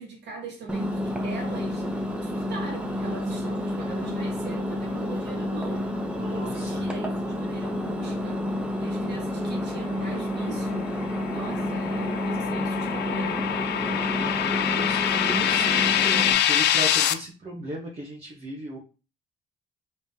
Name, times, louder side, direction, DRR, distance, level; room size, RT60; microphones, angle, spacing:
voice 1, 0.0-5.9 6.3-8.4 8.8-10.9 11.3-13.4, right 4 dB, 60° right, 1.6 m, -40 dB
Engine, 0.7-16.3, left 1 dB, 5° right, 0.7 m, -29 dB
voice 2, 6.1-6.9 13.6-18.8, right 1 dB, 30° right, 0.9 m, -37 dB
sound 1, 10.3-17.1, left 10 dB, 60° left, 0.4 m, -25 dB
3.5 x 3.3 x 2.7 m
cardioid pair, 90°, 20 cm